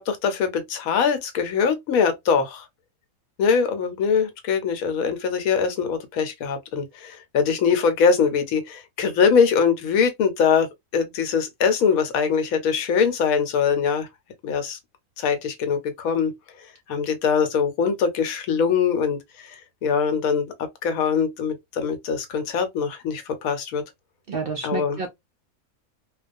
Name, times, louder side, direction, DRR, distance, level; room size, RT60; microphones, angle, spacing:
voice 1, 0.0-2.7 3.4-10.7 10.9-14.1 14.4-14.8 15.2-16.3 16.9-20.5 20.8-23.8 24.6-25.0, left 6 dB, 80° left, 1.1 m, -22 dB
voice 2, 24.3-25.1, right 5 dB, 65° right, 0.5 m, -29 dB
2.3 x 2.2 x 2.4 m
omnidirectional pair, 1.5 m